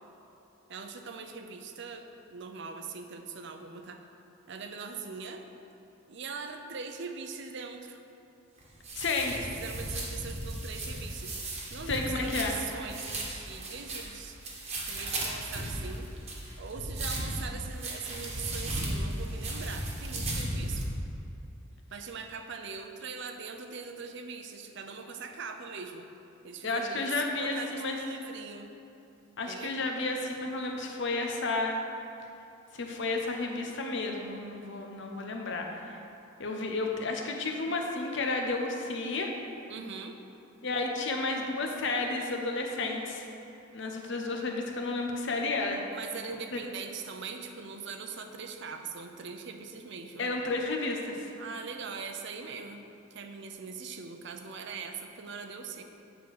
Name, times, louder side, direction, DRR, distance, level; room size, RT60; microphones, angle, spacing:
voice 1, 0.7-4.0 4.5-5.4 6.1-8.0 9.3-14.4 14.7-16.1 16.6-20.8 21.9-26.1 26.4-28.7 29.5-29.8 39.7-40.2 45.9-50.3 51.4-52.9 53.1-55.8, right 5 dB, 60° right, 6 dB, 0.6 m, -41 dB
sound 1, 8.6-20.8, right 1 dB, 30° right, 1.3 m, -36 dB
voice 2, 8.9-9.4 11.9-12.6 26.6-28.0 29.4-31.8 32.7-36.0 36.4-39.3 40.6-43.3 43.7-45.8 46.5-46.6 50.2-51.3, left 3 dB, 60° left, 2 dB, 0.9 m, -32 dB
8.4 x 4.5 x 6.4 m, 2.8 s
head